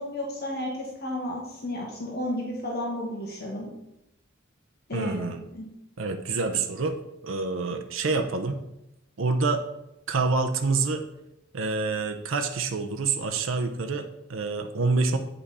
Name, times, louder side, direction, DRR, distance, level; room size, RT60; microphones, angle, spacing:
voice 1, 0.0-3.7 4.9-5.6, left 1 dB, 55° left, -1 dB, 1.6 m, -32 dB
voice 2, 4.9-5.4 6.0-8.6 9.2-9.6 10.1-11.1 11.5-15.2, right 3 dB, 80° right, 5 dB, 0.7 m, -27 dB
8.5 x 5.6 x 4.2 m, 0.87 s
head